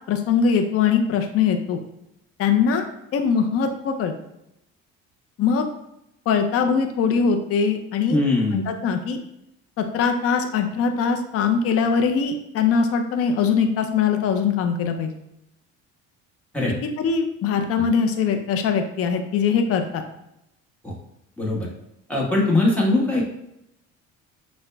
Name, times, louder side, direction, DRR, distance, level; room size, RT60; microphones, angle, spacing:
voice 1, 0.1-1.8 2.4-2.9 3.1-4.1 5.4-5.7 6.3-8.2 8.5-9.2 9.8-15.1 17.0-20.0, left 6 dB, 45° left, 5 dB, 0.5 m, -21 dB
voice 2, 8.1-8.6 16.5-16.7 17.8-17.9 20.8-20.9 21.4-21.7 22.1-23.3, left 2 dB, 5° left, -4 dB, 1.3 m, -21 dB
6.3 x 2.2 x 2.3 m, 0.82 s
cardioid pair, 95°, 32 cm